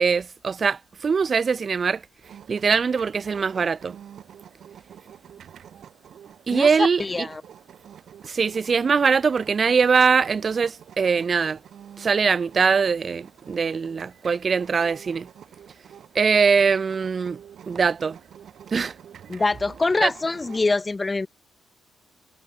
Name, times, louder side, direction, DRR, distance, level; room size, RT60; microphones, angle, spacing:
voice 1, 0.0-2.0 2.5-4.0 6.5-7.3 8.2-11.6 12.0-15.3 16.2-17.4 17.7-18.2 18.7-18.9 20.0-20.1, right 5 dB, 35° right, 0.3 m, -22 dB
sound 1, 2.2-20.7, right 9 dB, 60° right, 3.2 m, -47 dB
voice 2, 6.5-7.4 19.3-21.3, left 3 dB, 20° left, 0.8 m, -24 dB
cardioid pair, 110°, 0 cm